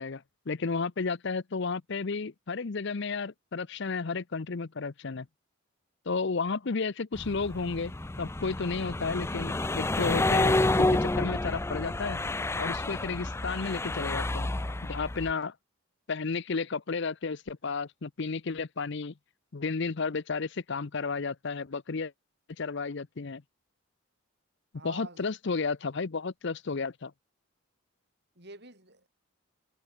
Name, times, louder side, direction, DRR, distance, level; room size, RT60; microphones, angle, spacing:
voice 1, 0.0-5.3 6.1-7.9 8.2-12.2 12.6-14.5 14.8-15.5 16.1-19.1 19.5-22.1 22.6-23.4 24.8-27.1, left 4 dB, 55° left, 0.6 m, -32 dB
sound 1, 7.2-15.3, left 2 dB, 10° left, 0.4 m, -29 dB
voice 2, 24.7-25.2 28.4-29.1, right 2 dB, 50° right, 7.0 m, -47 dB
head